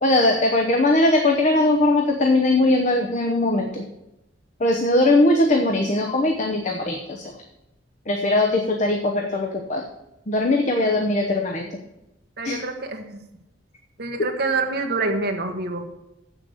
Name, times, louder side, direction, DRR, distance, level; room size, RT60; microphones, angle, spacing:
voice 1, 0.0-3.8 4.6-7.3 8.1-9.8 10.3-11.8 12.4-12.6, left 2 dB, 40° left, 2 dB, 0.9 m, -20 dB
voice 2, 12.4-13.2 14.0-15.9, right 3 dB, 55° right, 4 dB, 1.3 m, -26 dB
7.9 x 6.4 x 7.8 m, 0.91 s
head